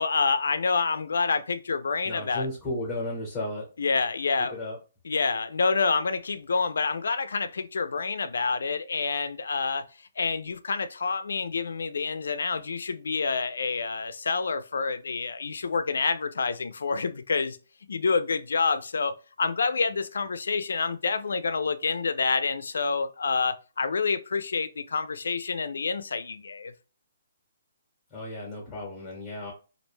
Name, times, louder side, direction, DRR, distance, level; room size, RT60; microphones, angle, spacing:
voice 1, 0.0-2.5 3.8-4.6 5.0-9.8 10.2-17.6 17.9-26.7, left 4 dB, 85° left, 0.3 m, -28 dB
voice 2, 2.0-3.6 4.4-4.8 28.1-29.5, left 1 dB, 10° left, 0.9 m, -34 dB
2.4 x 2.1 x 3.1 m
hypercardioid pair, 170°, 0 cm